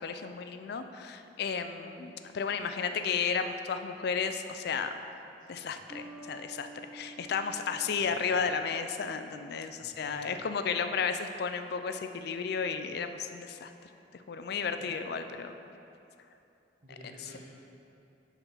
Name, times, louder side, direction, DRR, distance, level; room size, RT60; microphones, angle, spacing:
voice 1, 0.0-4.9 5.5-6.7 6.9-13.7 14.1-15.5, left 6 dB, 60° left, 9 dB, 0.4 m, -33 dB
Bass guitar, 5.9-9.4, right 2 dB, 15° right, 0.6 m, -50 dB
voice 2, 7.9-8.3 9.8-10.3 14.8-15.0 16.8-17.4, equal, 50° right, -11 dB, 1.3 m, -52 dB
6.4 x 5.0 x 5.5 m, 2.8 s
head